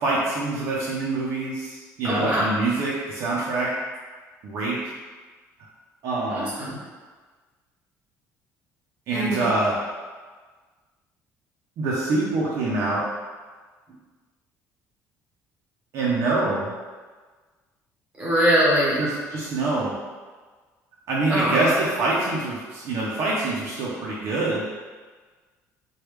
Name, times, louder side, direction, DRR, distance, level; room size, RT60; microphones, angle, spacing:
voice 1, 0.0-3.7 4.4-4.8 6.0-6.5 9.1-9.7 11.8-13.0 15.9-16.7 19.0-19.9 21.1-24.7, right 2 dB, 55° right, -6 dB, 0.5 m, -25 dB
voice 2, 2.0-2.5 6.3-6.8 9.1-9.5 18.2-19.0 21.3-21.8, equal, 20° right, -7 dB, 0.9 m, -22 dB
3.3 x 2.2 x 3.1 m, 1.4 s
cardioid pair, 170°, 6 cm